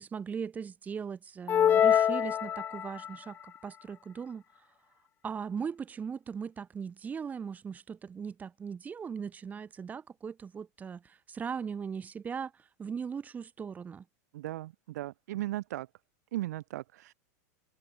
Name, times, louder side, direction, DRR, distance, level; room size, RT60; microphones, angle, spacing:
voice 1, 0.0-4.4 5.2-14.0, right 6 dB, 15° right, 5.3 m, -39 dB
sound 1, 1.5-3.1, left 9 dB, 20° left, 0.5 m, -25 dB
voice 2, 14.3-15.9 16.3-17.1, right 15 dB, 75° right, 7.1 m, -37 dB
supercardioid pair, 145°, 9 cm